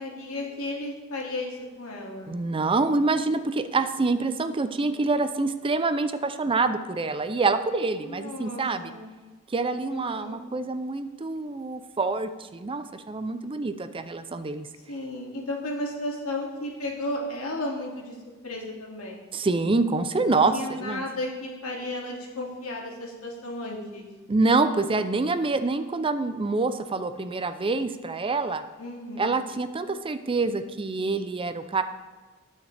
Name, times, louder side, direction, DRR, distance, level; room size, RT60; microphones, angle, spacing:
voice 1, 0.0-2.3 8.0-9.0 9.9-10.4 14.9-18.2 18.4-19.2 20.2-24.1 28.8-29.4, left 1 dB, 80° left, -1 dB, 2.4 m, -34 dB
voice 2, 2.3-8.9 9.5-14.7 19.3-20.5 20.8-21.0 24.3-28.6 29.2-31.8, right 3 dB, 25° right, 10 dB, 0.5 m, -26 dB
19.0 x 6.4 x 3.4 m, 1.3 s
head